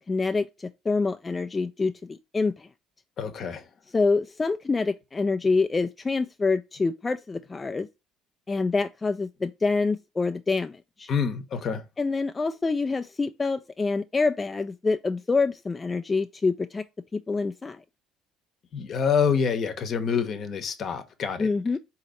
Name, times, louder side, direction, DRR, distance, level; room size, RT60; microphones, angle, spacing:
voice 1, 0.0-2.7 3.9-7.9 8.5-11.1 12.0-16.8 17.1-17.8 21.4-21.8, left 4 dB, 25° left, 0.3 m, -26 dB
voice 2, 3.2-3.6 11.1-11.8 18.7-21.5, left 6 dB, 55° left, 0.8 m, -26 dB
4.1 x 2.9 x 3.9 m
supercardioid pair, 75°, 0 cm